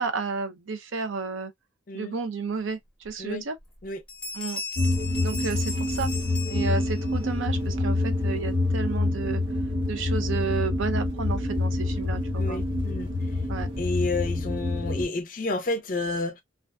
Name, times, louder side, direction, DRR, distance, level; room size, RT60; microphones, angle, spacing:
voice 1, 0.0-1.5 1.9-2.8 3.0-3.6 4.3-4.6 5.2-6.1 6.5-9.4 9.9-12.6 13.5-13.7, right 5 dB, 85° right, 0.5 m, -31 dB
sound 1, 3.0-3.1 3.6-3.8 4.1-7.2, left 3 dB, 5° left, 0.7 m, -37 dB
sound 2, 4.8-15.1, left 2 dB, 60° right, 1.2 m, -27 dB
voice 2, 12.4-13.1 13.8-16.4, left 2 dB, 45° left, 0.5 m, -30 dB
2.4 x 2.2 x 2.3 m
head